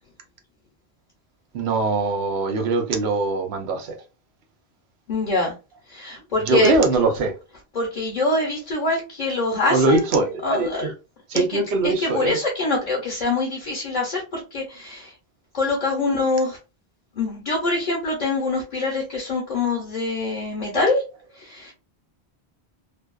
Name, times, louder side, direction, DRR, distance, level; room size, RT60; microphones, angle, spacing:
voice 1, 1.5-4.0 6.4-7.3 9.7-10.9 11.3-12.4, right 3 dB, 90° right, 0.9 m, -22 dB
voice 2, 5.1-5.5 5.9-6.7 7.7-10.1 10.4-10.9 11.3-15.1 15.5-16.6 17.1-21.0 21.4-21.7, left 2 dB, 50° left, 0.8 m, -24 dB
2.6 x 2.2 x 2.2 m
omnidirectional pair, 1.1 m